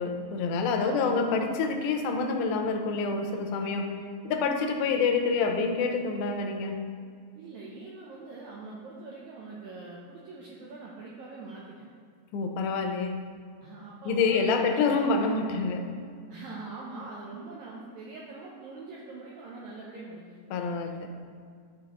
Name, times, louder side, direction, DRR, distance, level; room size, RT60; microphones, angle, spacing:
voice 1, 0.0-3.9 4.2-6.8 12.3-13.2 14.1-15.9 20.5-21.1, left 4 dB, 80° left, 4 dB, 1.9 m, -27 dB
voice 2, 0.8-1.5 7.3-11.8 13.6-15.0 16.3-20.8, right 3 dB, 85° right, -4 dB, 1.6 m, -43 dB
9.4 x 4.2 x 2.9 m, 2.1 s
omnidirectional pair, 4.1 m